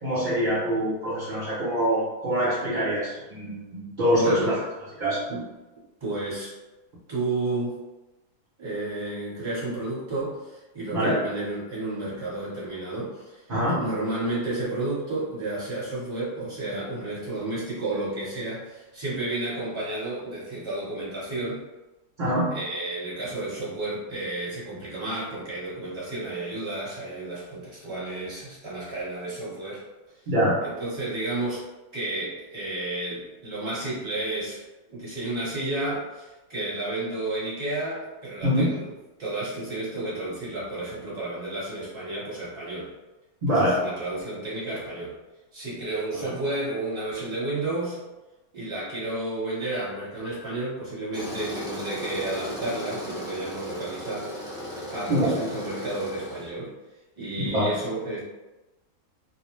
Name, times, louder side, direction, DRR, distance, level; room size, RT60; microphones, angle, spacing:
voice 1, 0.0-4.5 5.0-5.2 10.9-11.1 13.5-13.8 22.2-22.5 30.3-30.6 38.4-38.7 43.4-43.8 46.2-46.3 55.1-55.4 57.4-57.7, equal, 50° right, -9 dB, 0.6 m, -24 dB
voice 2, 4.1-4.6 5.3-5.5 6.0-6.5 7.1-7.8 8.6-13.4 13.7-21.6 22.5-29.8 30.6-31.6 31.9-34.6 34.9-38.8 39.2-42.9 43.5-45.1 45.5-48.0 48.5-54.3 54.9-56.7 57.2-58.2, right 2 dB, 20° right, -8 dB, 0.9 m, -31 dB
Tools, 51.1-56.5, equal, 5° right, 0.5 m, -36 dB
2.5 x 2.0 x 3.0 m, 1.1 s
omnidirectional pair, 1.6 m